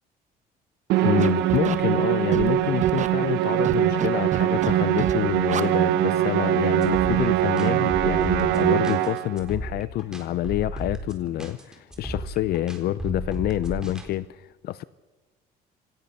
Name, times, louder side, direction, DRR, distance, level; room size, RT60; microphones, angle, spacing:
Musical instrument, 0.9-9.4, right 13 dB, 85° right, 1.1 m, -22 dB
voice 1, 1.0-14.8, left 14 dB, 70° left, 0.7 m, -27 dB
Scratching (performance technique), 1.2-1.8 2.3-2.5 2.8-3.1 3.6-4.1 4.3-4.7 5.0-5.1 5.5-5.6, right 9 dB, 45° right, 1.5 m, -28 dB
sound 1, 6.8-14.1, right 1 dB, 5° right, 4.0 m, -35 dB
27.5 x 15.5 x 6.8 m
cardioid pair, 110°, 17 cm